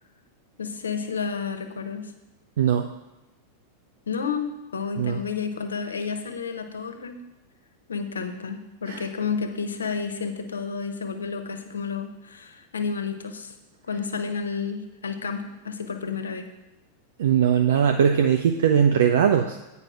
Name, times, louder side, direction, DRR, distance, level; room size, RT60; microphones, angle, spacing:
voice 1, 0.6-2.1 4.1-7.2 7.9-13.5 13.9-16.5, left 5 dB, 70° left, 7 dB, 0.9 m, -31 dB
voice 2, 2.6-2.9 5.0-5.2 8.9-9.0 17.2-19.6, right 8 dB, 60° right, 6 dB, 0.5 m, -20 dB
8.9 x 5.4 x 6.0 m, 1.0 s
figure-of-eight pair, 90°, 0 cm